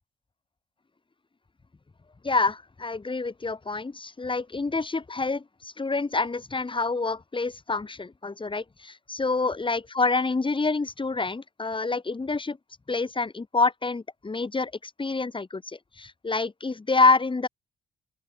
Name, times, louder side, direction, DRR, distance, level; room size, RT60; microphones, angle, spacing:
voice 1, 2.2-12.6 12.9-17.5, left 3 dB, 30° left, 5.5 m, -27 dB
open air
supercardioid pair, 50°, 16 cm